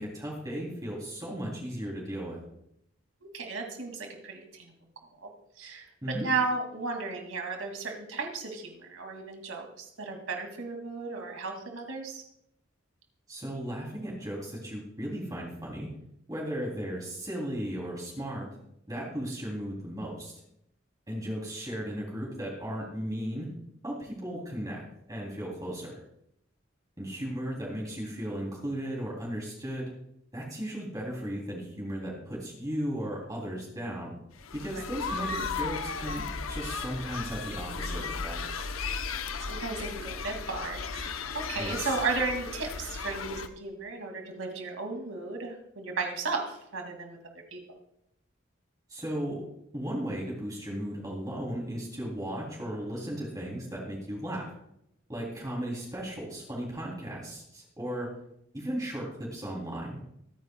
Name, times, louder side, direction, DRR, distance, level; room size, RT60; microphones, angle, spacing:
voice 1, 0.0-2.4 6.0-6.3 13.3-15.9 16.3-18.5 18.9-20.4 21.1-23.5 23.8-26.0 27.0-29.9 30.3-34.1 34.5-38.4 41.6-42.0 48.9-49.4 49.7-54.5 55.1-58.1 58.5-60.0, equal, 20° right, -4 dB, 3.1 m, -36 dB
voice 2, 3.2-4.7 5.2-5.3 5.6-12.2 34.7-34.8 39.1-47.2 47.5-47.8, right 4 dB, 80° right, 3 dB, 2.4 m, -35 dB
sound 1, 34.4-43.5, left 5 dB, 90° left, 0.8 m, -35 dB
23.5 x 9.5 x 2.3 m, 0.77 s
head